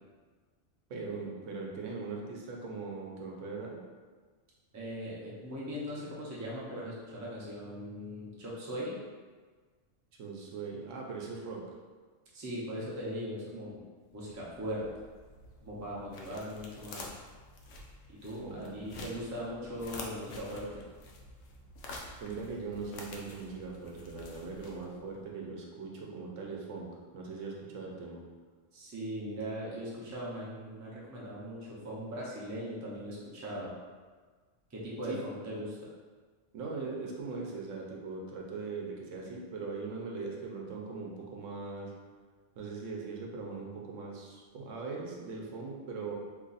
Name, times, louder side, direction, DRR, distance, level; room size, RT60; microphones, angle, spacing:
voice 1, 0.9-3.8 10.2-11.6 18.4-19.1 22.2-28.2 35.0-35.2 36.5-41.9 42.6-46.1, right 4 dB, 80° right, -2 dB, 1.0 m, -40 dB
voice 2, 4.7-8.9 12.3-13.8 14.1-14.8 15.6-17.1 18.1-20.7 28.7-33.7 34.7-35.8, equal, 20° right, -6 dB, 0.5 m, -39 dB
sound 1, 14.1-25.2, left 2 dB, 85° left, 0.9 m, -49 dB
2.9 x 2.5 x 3.9 m, 1.5 s
omnidirectional pair, 1.3 m